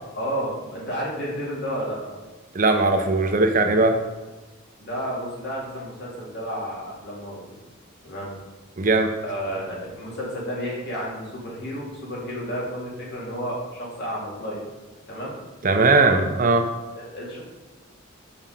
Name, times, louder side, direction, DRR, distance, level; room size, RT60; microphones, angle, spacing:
voice 1, 0.2-2.1 4.8-7.6 8.0-8.4 9.2-14.6 15.1-15.3 16.9-17.4, equal, 50° left, -4 dB, 2.6 m, -31 dB
voice 2, 2.5-4.0 8.8-9.1 15.6-16.7, right 3 dB, 40° right, 5 dB, 0.6 m, -19 dB
5.9 x 5.7 x 5.0 m, 1.3 s
head